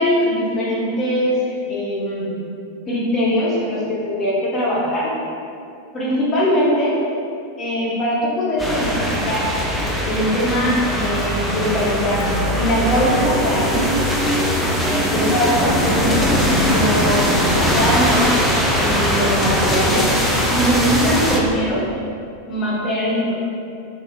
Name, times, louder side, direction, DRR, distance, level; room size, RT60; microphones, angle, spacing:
voice 1, 0.0-2.3 2.9-5.1 5.9-7.0 7.6-9.5 10.0-12.2 12.5-13.9 14.8-21.8 22.5-23.3, equal, 25° left, -6 dB, 0.7 m, -21 dB
sound 1, 8.6-21.4, equal, 5° left, 0.3 m, -20 dB
3.4 x 2.3 x 2.2 m, 2.5 s
figure-of-eight pair, 90°, 0 cm